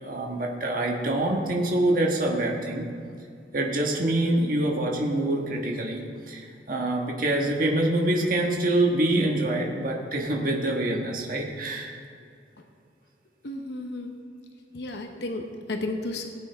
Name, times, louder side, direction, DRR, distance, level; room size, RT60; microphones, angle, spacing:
voice 1, 0.0-2.9 3.5-11.9, right 1 dB, 50° right, 0 dB, 1.5 m, -25 dB
voice 2, 13.4-14.1 14.7-16.3, left 2 dB, 70° left, 4 dB, 0.9 m, -33 dB
17.5 x 8.7 x 3.5 m, 2.3 s
head